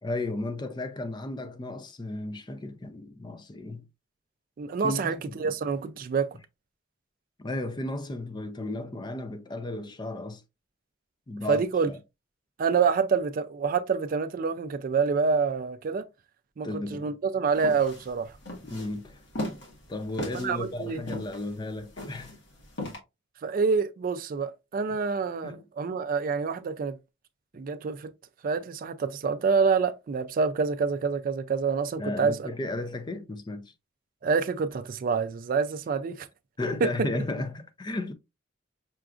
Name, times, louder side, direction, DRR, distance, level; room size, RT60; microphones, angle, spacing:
voice 1, 0.0-3.9 4.8-5.6 7.4-10.4 11.3-12.0 16.6-17.1 18.6-19.2 19.9-22.3 25.4-25.6 32.0-33.7 36.6-38.1, left 2 dB, 20° left, 0.4 m, -34 dB
voice 2, 4.6-6.3 11.5-11.9 12.6-16.1 16.6-18.3 20.4-21.0 23.4-27.0 27.5-28.1 28.4-32.5 34.2-36.3 36.8-37.1, right 5 dB, 45° right, 0.3 m, -27 dB
sound 1, 17.6-23.0, left 1 dB, 65° left, 1.3 m, -37 dB
5.7 x 2.4 x 2.4 m
head